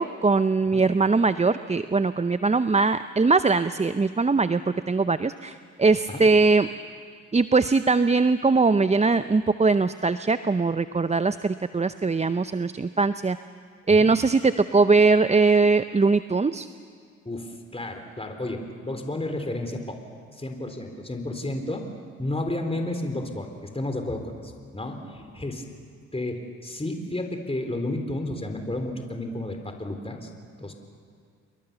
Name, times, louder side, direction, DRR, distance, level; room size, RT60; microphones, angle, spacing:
voice 1, 0.0-6.7 7.3-13.4 13.9-16.7, right 4 dB, 20° right, 12 dB, 0.7 m, -21 dB
voice 2, 17.2-20.0 20.3-21.9 22.2-25.6 26.1-30.3 30.6-30.7, left 1 dB, 15° left, 5 dB, 4.0 m, -32 dB
29.0 x 22.0 x 7.0 m, 2.1 s
supercardioid pair, 50°, 33 cm